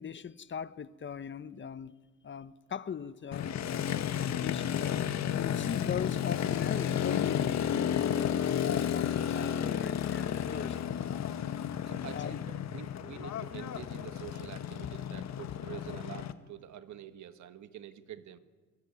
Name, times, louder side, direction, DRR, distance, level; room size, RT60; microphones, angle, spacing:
voice 1, 0.0-2.0 2.2-10.8 12.1-12.4, left 7 dB, 40° left, 0.9 m, -40 dB
Motorcycle, 3.3-16.3, left 9 dB, 60° left, 1.5 m, -32 dB
voice 2, 11.8-18.4, right 11 dB, 70° right, 1.6 m, -47 dB
25.0 x 22.5 x 9.5 m
cardioid pair, 90°, 30 cm